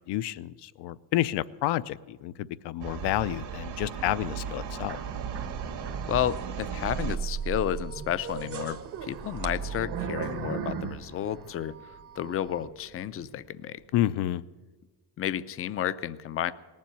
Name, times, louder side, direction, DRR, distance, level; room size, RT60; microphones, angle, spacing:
voice 1, 0.1-5.0 13.9-14.4, left 14 dB, 80° left, 18 dB, 0.6 m, -29 dB
sound 1, 2.8-7.2, right 7 dB, 75° right, 2.2 m, -36 dB
sound 2, 4.8-6.5 6.8-10.8 11.2-12.7, right 7 dB, 35° right, 0.7 m, -39 dB
voice 2, 6.1-13.8 15.2-16.5, left 10 dB, 35° left, 15 dB, 0.4 m, -32 dB
sound 3, 8.3-12.0 12.5-12.6 13.2-13.3, right 7 dB, 60° right, 1.3 m, -36 dB
19.0 x 7.4 x 9.8 m, 1.3 s
cardioid pair, 165°, 41 cm